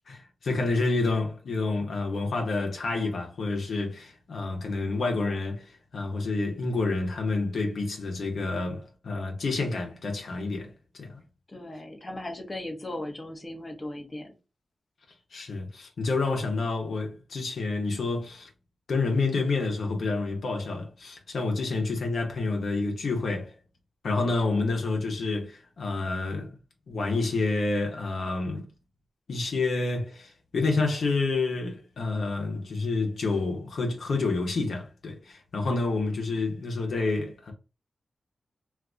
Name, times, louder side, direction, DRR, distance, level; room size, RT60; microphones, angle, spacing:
voice 1, 0.1-11.2 15.3-18.5 18.9-23.5 24.0-26.5 26.9-28.7 29.3-37.5, left 3 dB, 80° left, 0.9 m, -29 dB
voice 2, 11.5-14.3, left 1 dB, 25° left, 0.8 m, -38 dB
2.6 x 2.6 x 3.4 m
cardioid pair, 75°, 0 cm